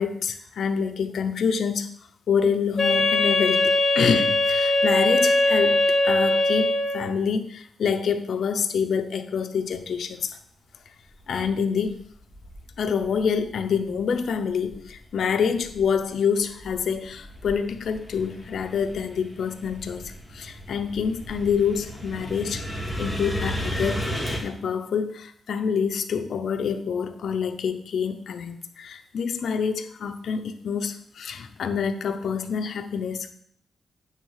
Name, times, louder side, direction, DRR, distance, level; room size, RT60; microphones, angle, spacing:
voice 1, 0.0-1.9 2.3-10.4 11.3-12.0 12.8-24.0 24.4-33.3, left 6 dB, 70° left, 8 dB, 0.8 m, -27 dB
Wind instrument woodwind instrument, 2.8-7.2, left 1 dB, 45° left, 1.6 m, -21 dB
sound 1, 11.2-11.3 11.8-13.5 13.9-15.2 15.5-24.4, equal, 5° right, 2.2 m, -34 dB
9.0 x 4.0 x 6.5 m, 0.64 s
cardioid pair, 100°, 0 cm